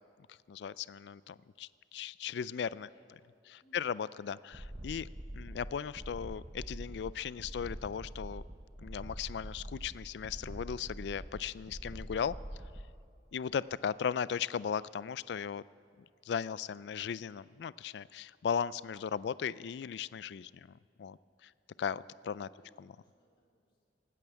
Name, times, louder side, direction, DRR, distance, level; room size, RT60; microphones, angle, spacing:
voice 1, 0.5-2.9 3.7-5.1 5.3-8.4 8.8-12.4 13.3-15.6 16.2-21.2 21.4-21.5 21.8-22.5 22.8-22.9, left 7 dB, 70° left, 19 dB, 0.3 m, -37 dB
voice 2, 2.9-3.3 3.6-3.8 22.5-23.9, equal, 30° left, -3 dB, 2.3 m, -68 dB
sound 1, 4.5-13.0, right 1 dB, 15° right, 0.6 m, -45 dB
19.0 x 9.1 x 8.2 m, 2.4 s
head